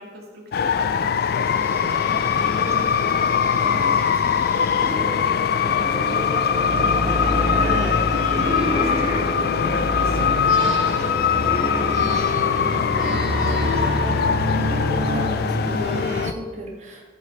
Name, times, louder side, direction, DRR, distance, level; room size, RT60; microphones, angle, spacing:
voice 1, 0.0-2.1 2.4-7.1 7.7-7.8 8.1-9.4 9.7-15.0, equal, 65° right, -1 dB, 2.2 m, -41 dB
sound 1, 0.5-16.3, left 7 dB, 60° left, 0.3 m, -22 dB
sound 2, 1.2-13.5 13.9-14.0 15.1-16.3, equal, 15° right, 1.6 m, -33 dB
sound 3, 6.5-16.3, left 1 dB, 85° right, 1.4 m, -26 dB
voice 2, 7.5-8.0 15.1-17.1, equal, 45° right, -2 dB, 2.1 m, -33 dB
14.0 x 4.9 x 5.1 m, 1.4 s
head